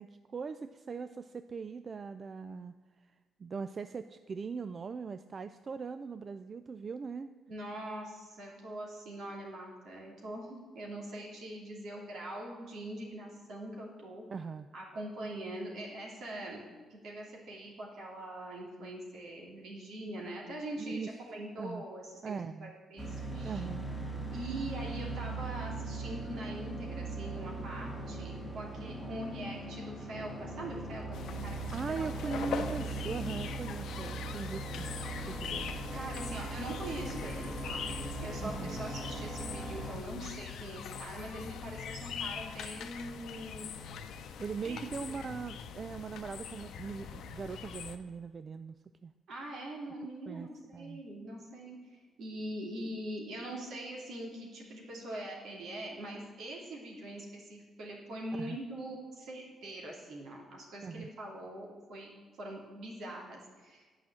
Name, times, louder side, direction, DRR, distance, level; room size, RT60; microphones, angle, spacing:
voice 1, 0.0-2.7 3.4-7.3 14.3-14.7 20.8-21.1 21.6-21.9 22.2-22.7 23.4-23.9 31.7-34.9 35.2-35.7 38.4-38.8 44.4-48.8 49.0-49.1 50.3-51.0 58.4-58.6 60.8-61.1, right 5 dB, 40° right, 11 dB, 0.3 m, -40 dB
voice 2, 7.5-14.2 14.7-16.6 16.9-22.4 22.6-23.6 24.3-32.7 35.9-37.9 38.2-43.7 44.6-44.8 49.3-62.1 62.4-63.8, right 1 dB, 70° right, -2 dB, 2.8 m, -43 dB
sound 1, 23.0-40.0, right 2 dB, 10° right, 1.9 m, -40 dB
sound 2, 31.1-48.0, left 6 dB, 75° left, 0.7 m, -42 dB
9.5 x 5.7 x 7.5 m, 1.4 s
cardioid pair, 90°, 0 cm